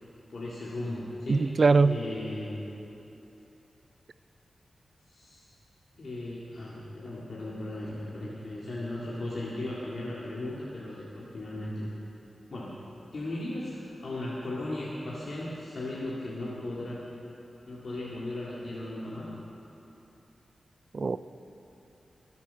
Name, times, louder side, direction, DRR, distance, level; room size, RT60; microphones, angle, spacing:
voice 1, 0.0-1.5 1.8-2.6 5.1-5.5 6.0-11.9 12.5-12.8 13.1-17.1 17.7-19.3, left 1 dB, 55° left, -7 dB, 2.2 m, -36 dB
voice 2, 1.3-2.0 20.9-21.2, right 4 dB, 50° right, 14 dB, 0.4 m, -22 dB
22.5 x 8.2 x 6.9 m, 2.9 s
wide cardioid pair, 130°, 0 cm